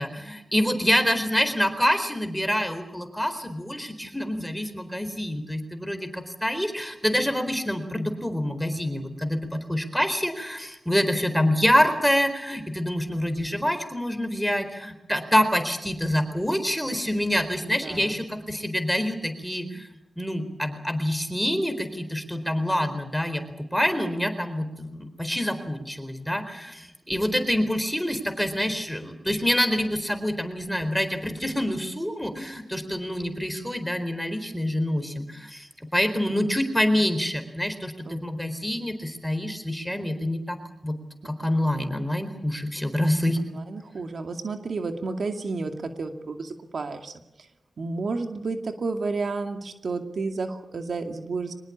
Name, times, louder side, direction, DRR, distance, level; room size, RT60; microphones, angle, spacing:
voice 1, 0.0-19.9 20.2-23.4 23.7-40.6 40.8-40.9 41.2-43.4, equal, 5° left, 9 dB, 4.2 m, -26 dB
voice 2, 17.6-18.2 36.3-36.6 38.1-38.2 43.5-47.1 47.8-51.5, right 3 dB, 70° right, 5 dB, 2.3 m, -31 dB
24.0 x 20.5 x 8.7 m, 0.89 s
wide cardioid pair, 85°, 0 cm